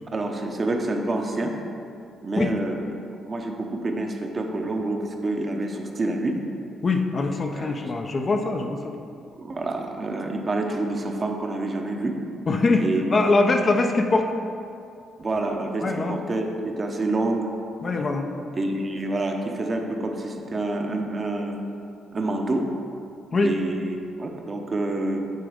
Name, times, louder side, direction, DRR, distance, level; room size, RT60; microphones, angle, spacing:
voice 1, 0.1-1.5 2.2-2.9 3.3-6.4 7.5-7.9 9.3-12.2 12.8-13.0 15.2-17.5 18.6-21.6 22.1-22.7 23.4-25.3, right 2 dB, 35° right, 2 dB, 0.8 m, -27 dB
voice 2, 6.8-8.9 12.5-14.3 15.8-16.1 17.8-18.3 23.3-23.5, left 3 dB, 40° left, 4 dB, 0.6 m, -22 dB
9.4 x 3.8 x 5.1 m, 2.5 s
cardioid pair, 90°, 0 cm